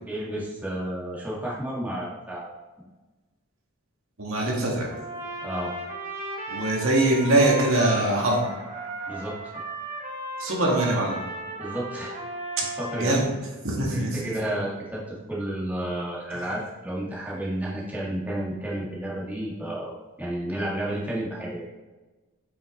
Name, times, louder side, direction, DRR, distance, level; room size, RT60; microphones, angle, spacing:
voice 1, 0.1-2.5 5.4-5.7 9.1-9.3 11.6-12.2 12.8-13.2 13.9-15.0 15.3-21.6, right 1 dB, 10° right, -6 dB, 1.8 m, -31 dB
voice 2, 4.2-4.9 6.5-8.5 10.4-11.2 13.0-13.3 13.6-14.2 16.3-16.4, right 2 dB, 75° right, -2 dB, 1.9 m, -23 dB
Trumpet, 4.9-13.2, right 1 dB, 35° right, 1.3 m, -35 dB
8.8 x 6.0 x 3.2 m, 1.2 s
head